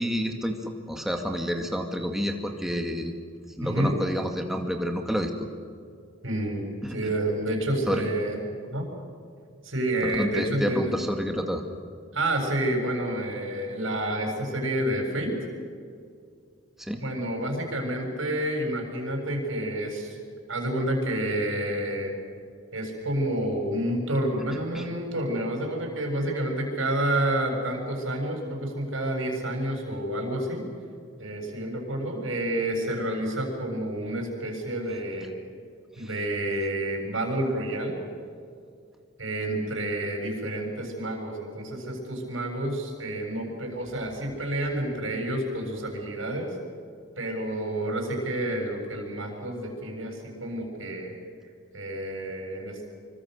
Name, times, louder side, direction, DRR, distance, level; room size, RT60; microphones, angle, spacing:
voice 1, 0.0-3.1 3.6-5.3 6.8-7.1 7.9-8.0 10.0-11.6 16.8-17.0 24.7-24.9 36.0-36.1, equal, ahead, 3 dB, 2.1 m, -29 dB
voice 2, 3.6-3.9 6.2-6.6 6.9-8.4 8.7-8.9 9.6-10.9 12.1-15.3 17.0-20.2 20.5-22.1 22.7-30.6 31.2-35.3 36.0-38.0 39.2-46.5 47.2-51.2 51.7-52.9, right 1 dB, 70° right, 2 dB, 7.3 m, -29 dB
26.0 x 25.0 x 6.7 m, 2.3 s
head